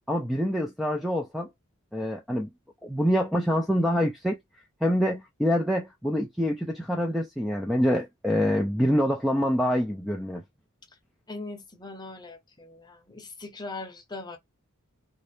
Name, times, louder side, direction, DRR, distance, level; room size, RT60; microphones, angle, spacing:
voice 1, 0.1-1.5 1.9-2.5 2.8-4.4 4.8-10.4, equal, ahead, 0.4 m, -26 dB
voice 2, 11.3-14.4, left 3 dB, 20° left, 0.7 m, -40 dB
3.1 x 2.6 x 3.3 m
head